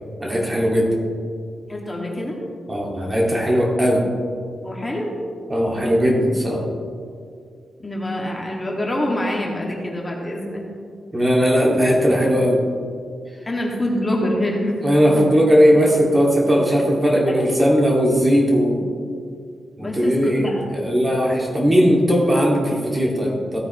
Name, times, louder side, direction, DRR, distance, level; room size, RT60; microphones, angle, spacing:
voice 1, 0.2-0.9 2.7-4.0 5.5-6.6 11.1-12.6 14.8-18.9 19.8-23.6, equal, 25° right, -2 dB, 2.4 m, -18 dB
voice 2, 1.7-2.4 4.6-5.1 7.8-10.6 13.5-14.8 15.1-15.3 17.3-17.5 19.8-20.6, left 1 dB, 25° left, -2 dB, 2.3 m, -25 dB
16.0 x 9.1 x 3.2 m, 2.2 s
cardioid pair, 65°, 0 cm